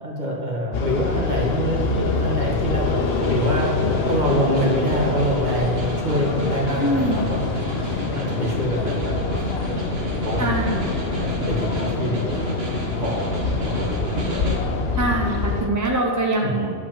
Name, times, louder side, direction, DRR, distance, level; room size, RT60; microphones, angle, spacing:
voice 1, 0.0-3.0 3.3-7.4 8.1-10.7 11.2-12.4 13.0-13.3 13.7-14.1 16.4-16.7, equal, 45° right, -3 dB, 1.9 m, -26 dB
sound 1, 0.7-15.7, left 3 dB, 70° left, 1.1 m, -25 dB
Snare drum, 2.9-14.7, equal, 70° right, 1.4 m, -32 dB
voice 2, 6.8-7.2 10.4-11.3 15.0-16.7, right 1 dB, 20° right, 0 dB, 0.8 m, -24 dB
11.0 x 4.7 x 7.5 m, 2.1 s
omnidirectional pair, 1.1 m